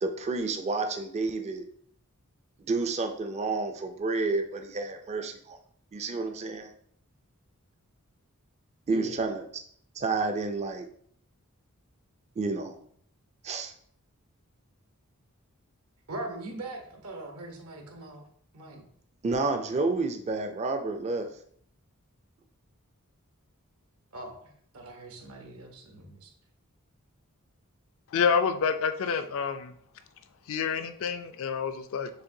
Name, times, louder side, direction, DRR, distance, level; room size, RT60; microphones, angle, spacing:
voice 1, 0.0-1.6 2.7-5.6 5.9-6.7 8.9-9.5 9.9-10.9 12.4-12.8 13.4-13.7 19.2-21.3, right 3 dB, 30° right, 6 dB, 0.4 m, -30 dB
voice 2, 16.1-18.2 18.5-18.8 24.1-26.3, right 2 dB, 75° right, 2 dB, 1.0 m, -41 dB
voice 3, 28.1-29.7 30.5-32.1, left 6 dB, 65° left, 9 dB, 0.4 m, -28 dB
6.5 x 2.6 x 2.7 m, 0.63 s
head